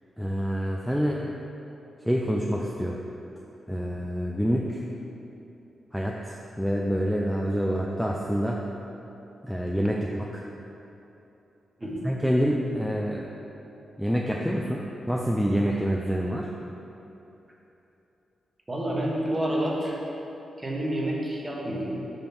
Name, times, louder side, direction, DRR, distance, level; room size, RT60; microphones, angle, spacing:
voice 1, 0.2-1.2 2.0-3.0 3.7-4.8 5.9-8.6 9.4-10.4 12.0-13.3 14.0-16.5, equal, ahead, -1 dB, 0.4 m, -27 dB
voice 2, 18.7-20.0 20.6-22.0, right 1 dB, 20° right, -3 dB, 1.2 m, -29 dB
5.4 x 5.2 x 5.9 m, 3.0 s
cardioid pair, 100°, 0 cm